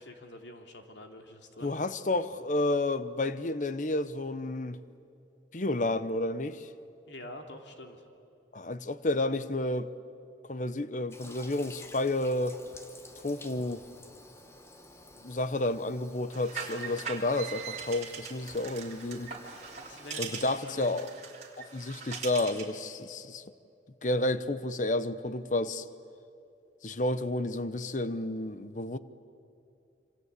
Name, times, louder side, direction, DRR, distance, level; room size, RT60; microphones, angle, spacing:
voice 1, 0.0-1.7 7.1-8.1 19.7-21.1, left 1 dB, 90° left, 2.8 m, -47 dB
voice 2, 1.6-4.8 5.5-6.7 8.5-9.9 10.5-12.6 13.2-13.8 15.2-19.3 20.2-21.1 21.6-23.4 24.0-25.8 26.8-29.0, left 2 dB, 45° left, 0.9 m, -31 dB
Toilet flush, 11.1-20.6, left 1 dB, 15° left, 1.4 m, -52 dB
sound 1, 16.3-22.7, right 6 dB, 40° right, 3.4 m, -41 dB
26.5 x 26.0 x 8.2 m
head